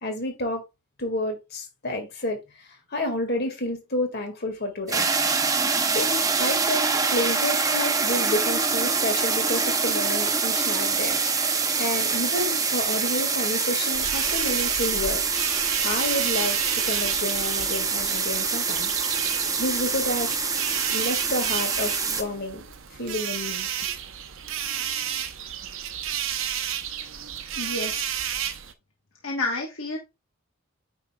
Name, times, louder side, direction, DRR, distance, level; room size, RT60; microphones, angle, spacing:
voice 1, 0.0-0.6 1.0-5.1 5.9-11.2 11.8-15.2 15.8-18.9 19.6-20.4 20.9-22.7 23.0-23.7, left 1 dB, 45° left, 2.0 m, -30 dB
sound 1, 4.9-22.2, right 5 dB, 15° right, 0.7 m, -25 dB
sound 2, 13.9-28.7, right 10 dB, 60° right, 0.7 m, -32 dB
voice 2, 27.6-28.1 29.2-30.0, left 2 dB, 65° left, 1.3 m, -30 dB
9.1 x 5.6 x 2.3 m
head